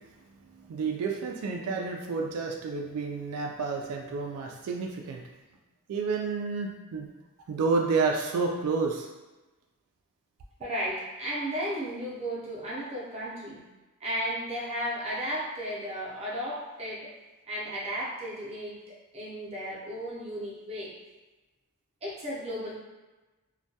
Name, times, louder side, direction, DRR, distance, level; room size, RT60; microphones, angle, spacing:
voice 1, 0.5-5.2 5.9-7.1 7.5-9.1, right 4 dB, 85° right, 6 dB, 0.3 m, -30 dB
voice 2, 10.6-13.6 14.0-17.1 17.5-20.9 22.0-22.7, equal, 30° right, -6 dB, 0.5 m, -34 dB
2.2 x 2.2 x 2.7 m, 1.1 s
head